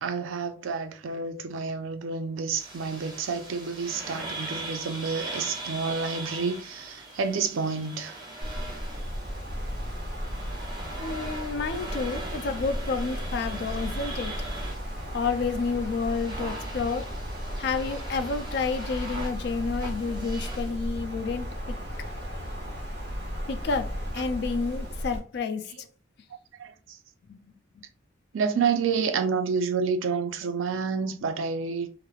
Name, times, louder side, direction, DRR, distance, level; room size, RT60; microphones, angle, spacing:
voice 1, 0.0-8.2 26.6-27.0 28.3-31.9, right 5 dB, 75° right, 0.4 m, -29 dB
sound 1, 2.6-20.7, right 2 dB, 20° right, 0.7 m, -41 dB
Wind, 8.4-25.2, equal, 55° right, 0.8 m, -35 dB
voice 2, 11.0-14.3 15.1-17.1 17.6-21.8 23.5-25.7 27.3-27.4, left 4 dB, 55° left, 0.3 m, -30 dB
2.9 x 2.0 x 2.3 m
head